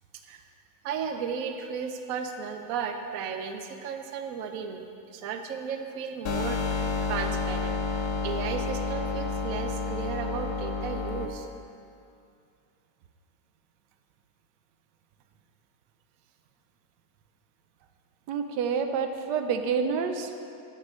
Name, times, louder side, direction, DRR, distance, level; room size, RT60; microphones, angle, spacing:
voice 1, 0.8-7.8 8.2-11.5, right 6 dB, 65° right, 6 dB, 1.0 m, -35 dB
sound 1, 6.3-11.3, left 4 dB, 70° left, 1.3 m, -30 dB
voice 2, 18.3-20.4, right 6 dB, 90° right, 6 dB, 1.3 m, -28 dB
9.1 x 5.9 x 6.2 m, 2.5 s
omnidirectional pair, 1.8 m